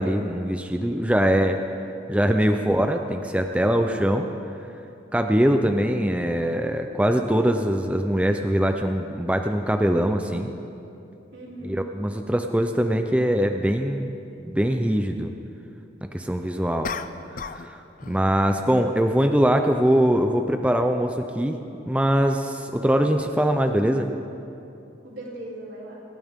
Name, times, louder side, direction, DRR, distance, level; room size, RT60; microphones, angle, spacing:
voice 1, 0.0-1.6 2.1-4.3 5.1-10.5 11.6-14.2 14.4-15.3 16.1-16.9 17.5-17.8 18.1-21.6 21.9-24.1, equal, 5° right, 5 dB, 0.6 m, -22 dB
voice 2, 2.3-2.7 11.3-11.9 25.0-26.0, right 1 dB, 85° right, -5 dB, 4.1 m, -39 dB
sound 1, 12.8-12.9 16.8-17.7 18.0-18.3, left 5 dB, 45° left, 0.5 m, -34 dB
28.0 x 12.5 x 3.7 m, 2.7 s
head